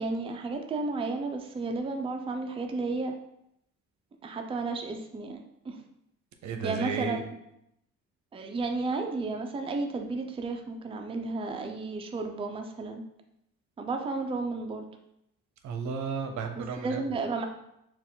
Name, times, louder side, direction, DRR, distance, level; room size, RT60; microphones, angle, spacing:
voice 1, 0.0-3.1 4.2-5.4 5.6-5.8 6.6-7.3 8.3-13.0 13.8-14.9 16.8-17.5, right 3 dB, 20° right, 3 dB, 0.4 m, -32 dB
voice 2, 6.4-7.2 15.6-17.0, right 5 dB, 70° right, 5 dB, 0.6 m, -33 dB
4.5 x 2.4 x 3.7 m, 0.79 s
cardioid pair, 90°, 30 cm